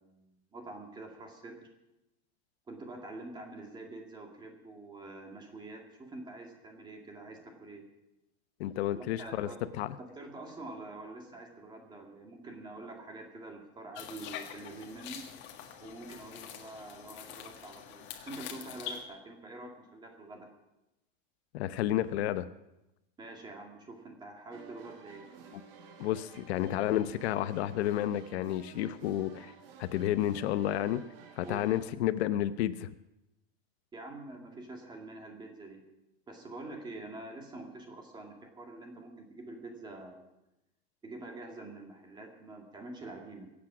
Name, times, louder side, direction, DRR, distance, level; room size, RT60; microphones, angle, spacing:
voice 1, 0.0-1.7 2.7-7.8 8.9-9.6 10.2-15.3 15.8-20.5 23.2-25.3 31.4-31.8 33.9-35.8 36.3-40.3 41.0-43.5, right 2 dB, 15° right, 2 dB, 2.1 m, -46 dB
voice 2, 8.6-9.5 9.8-10.0 21.5-22.5 26.0-29.5 29.8-31.0 31.4-32.9, left 12 dB, 80° left, 13 dB, 0.8 m, -31 dB
sound 1, 14.0-19.0, left 8 dB, 35° left, 1.7 m, -45 dB
sound 2, 24.5-31.8, right 7 dB, 60° right, 2.0 m, -53 dB
22.5 x 8.5 x 6.1 m, 0.95 s
supercardioid pair, 165°, 32 cm